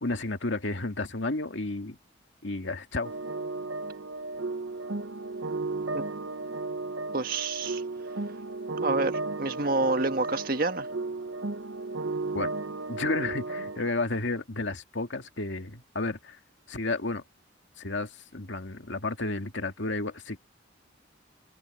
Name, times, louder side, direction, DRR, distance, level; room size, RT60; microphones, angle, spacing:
voice 1, 0.0-2.0 2.4-3.1 12.3-12.5 12.9-16.4 16.7-17.2 17.8-20.4, left 2 dB, 75° left, 2.1 m, -32 dB
sound 1, 3.0-13.9, right 3 dB, 80° right, 0.8 m, -34 dB
voice 2, 7.1-7.8 8.8-10.9, right 3 dB, 50° right, 1.7 m, -28 dB
head